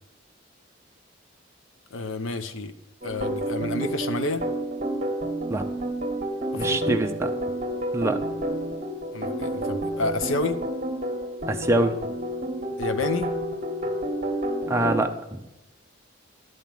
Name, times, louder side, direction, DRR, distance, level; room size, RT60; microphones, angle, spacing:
voice 1, 1.9-2.7 3.0-4.4 6.5-7.0 9.1-10.6 12.8-13.3, left 3 dB, 85° left, 11 dB, 0.8 m, -29 dB
sound 1, 3.0-15.0, right 1 dB, 35° right, 1.3 m, -29 dB
voice 2, 6.5-7.3 7.9-8.2 11.5-12.0 14.7-15.4, right 1 dB, 15° right, 5 dB, 0.7 m, -24 dB
11.0 x 5.3 x 7.5 m, 0.96 s
head